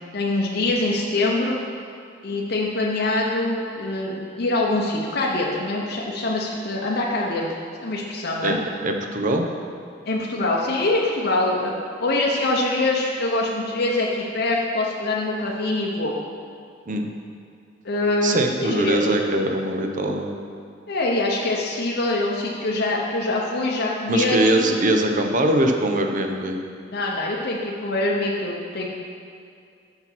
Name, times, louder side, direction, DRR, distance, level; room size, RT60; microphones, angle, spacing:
voice 1, 0.1-1.6 2.2-7.5 7.8-8.6 10.1-11.7 12.0-16.1 17.8-19.1 20.9-24.7 26.9-28.9, left 2 dB, 55° left, -2 dB, 0.7 m, -24 dB
voice 2, 8.4-9.4 16.9-17.1 18.2-20.3 24.1-26.6, right 1 dB, 45° right, 4 dB, 0.7 m, -22 dB
6.8 x 5.9 x 5.9 m, 2.3 s
head